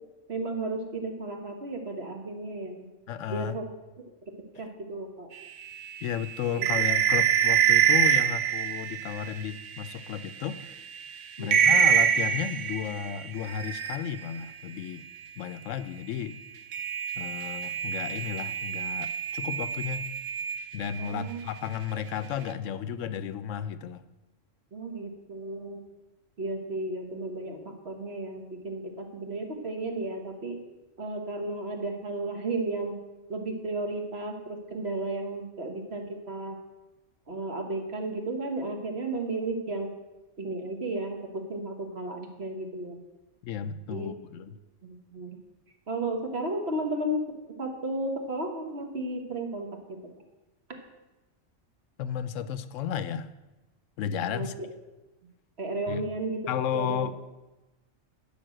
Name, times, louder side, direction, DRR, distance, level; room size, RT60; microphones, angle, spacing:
voice 1, 0.3-2.8 3.3-3.7 4.0-5.3 6.5-6.7 11.4-11.7 21.0-21.4 24.7-25.8 26.4-30.6 31.0-33.0 33.3-36.6 37.3-39.9 40.4-43.0 43.9-44.1 44.8-45.4 45.9-47.2 47.6-50.0 50.7-50.8 54.3-54.5 55.6-56.4 56.7-57.1, right 2 dB, 55° right, 4 dB, 1.6 m, -34 dB
voice 2, 3.1-3.6 6.0-10.7 11.4-15.0 15.4-16.4 17.2-20.1 20.7-24.0 43.4-44.5 52.0-53.3 54.0-54.5 55.9-56.0 56.5-57.1, left 8 dB, 75° left, 13 dB, 0.9 m, -33 dB
sound 1, 5.6-10.0 10.5-10.6 10.9-11.1 11.4-14.4 16.7-21.1, right 8 dB, 70° right, 1.0 m, -26 dB
11.5 x 5.2 x 7.6 m, 1.1 s
omnidirectional pair, 1.3 m